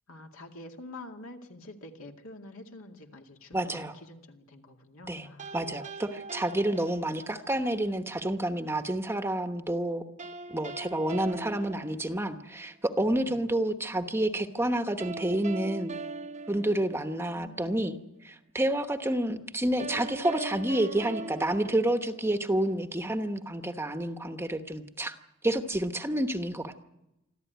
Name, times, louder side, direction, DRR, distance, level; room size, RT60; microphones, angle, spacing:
voice 1, 0.1-5.5 11.1-11.2 13.2-13.4 17.3-17.8, left 2 dB, 70° left, 3 dB, 2.3 m, -47 dB
voice 2, 3.5-3.9 5.1-5.3 5.5-10.0 10.5-15.9 16.5-18.0 18.2-25.2 25.4-26.8, right 1 dB, 10° right, 7 dB, 1.0 m, -29 dB
sound 1, 5.4-7.6 10.2-12.6 15.0-17.5 19.8-22.6, right 3 dB, 35° right, 0.9 m, -41 dB
25.5 x 14.0 x 9.3 m, 0.92 s
head